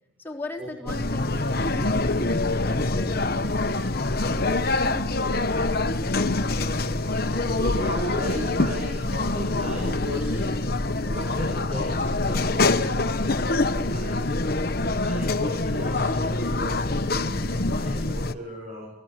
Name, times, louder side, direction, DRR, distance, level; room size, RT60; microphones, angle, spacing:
voice 1, 0.2-3.4 4.2-7.1, left 1 dB, 10° left, 1 dB, 3.9 m, -40 dB
sound 1, 0.9-18.3, left 2 dB, 50° left, 1.2 m, -25 dB
voice 2, 7.3-10.6 11.0-13.6 13.9-14.3 15.0-18.9, equal, 35° right, -2 dB, 7.0 m, -38 dB
27.0 x 20.5 x 9.1 m, 0.93 s
head